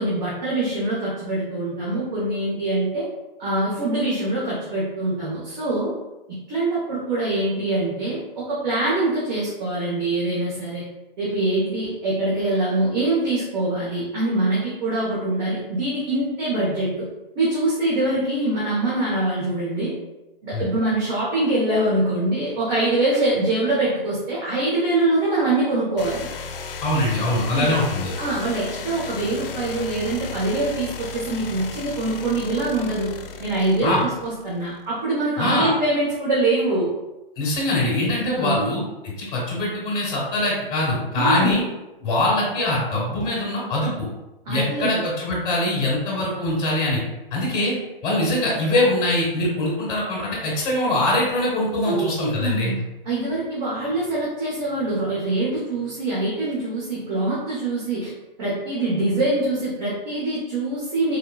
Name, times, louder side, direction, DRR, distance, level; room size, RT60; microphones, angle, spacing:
voice 1, 0.0-3.1 3.4-5.9 6.3-10.8 11.2-17.1 17.3-19.9 20.4-26.3 27.5-27.7 28.2-33.1 33.4-36.9 38.2-38.6 41.1-41.6 44.5-45.0 51.8-52.8 53.0-58.1 58.4-61.2, right 2 dB, 50° right, -7 dB, 1.0 m, -24 dB
sound 1, 26.0-34.7, left 5 dB, 70° left, 0.5 m, -35 dB
voice 2, 26.8-28.1 33.8-34.0 35.4-35.7 37.4-41.6 42.0-44.1 44.5-47.0 47.3-47.7 48.0-52.7, left 1 dB, 15° left, -6 dB, 1.0 m, -23 dB
3.6 x 2.2 x 2.3 m, 1.0 s
hypercardioid pair, 140°, 29 cm